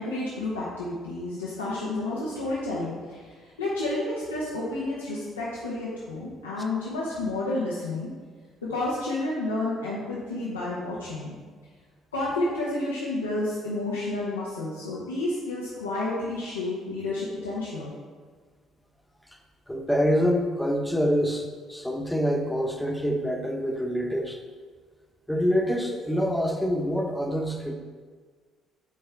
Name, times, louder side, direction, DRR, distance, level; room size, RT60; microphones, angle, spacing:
voice 1, 0.0-8.1 8.7-11.3 12.1-17.9, left 2 dB, 85° left, -7 dB, 0.9 m, -30 dB
voice 2, 19.7-24.4 25.3-27.7, equal, 5° left, 3 dB, 1.1 m, -26 dB
9.4 x 4.3 x 3.4 m, 1.5 s
figure-of-eight pair, 45°, 0 cm